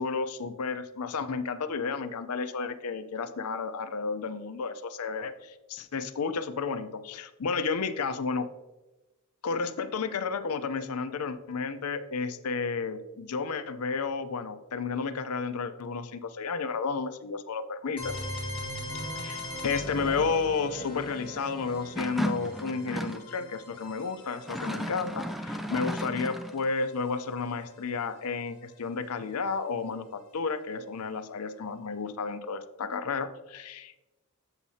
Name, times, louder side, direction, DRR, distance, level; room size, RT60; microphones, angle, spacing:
voice 1, 0.0-8.5 9.4-18.1 19.2-34.0, left 4 dB, 80° left, 11 dB, 0.6 m, -32 dB
sound 1, 18.0-27.7, left 1 dB, 25° left, 1.7 m, -41 dB
sound 2, 22.0-23.3 24.4-26.6, equal, ahead, 0.3 m, -34 dB
8.1 x 7.1 x 2.8 m, 1.0 s
head